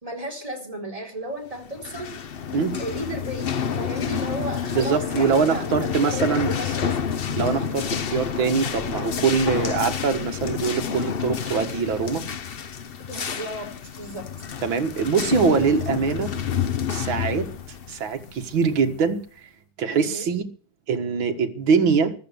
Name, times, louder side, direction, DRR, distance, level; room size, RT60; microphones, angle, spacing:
voice 1, 0.0-2.1 2.8-7.1 13.1-13.7 14.0-14.3 19.9-20.3, right 1 dB, 15° right, 4.3 m, -34 dB
sound 1, 1.7-19.1, left 7 dB, 85° left, 0.5 m, -29 dB
voice 2, 4.7-6.5 7.3-12.2 14.6-16.3 16.9-17.5 17.9-19.2 19.8-20.4 20.9-22.1, right 5 dB, 70° right, 2.3 m, -23 dB
14.5 x 12.0 x 6.9 m
omnidirectional pair, 2.2 m